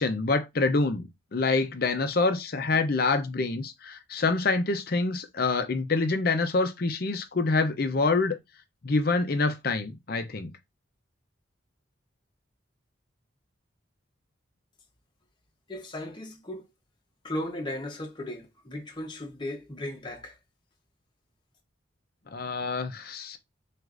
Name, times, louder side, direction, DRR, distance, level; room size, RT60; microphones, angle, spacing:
voice 1, 0.0-8.4 8.8-10.5 22.3-23.4, left 3 dB, 50° left, 0.6 m, -26 dB
voice 2, 15.7-16.6 17.2-20.4, left 1 dB, 25° left, 0.9 m, -36 dB
6.2 x 2.5 x 2.5 m
head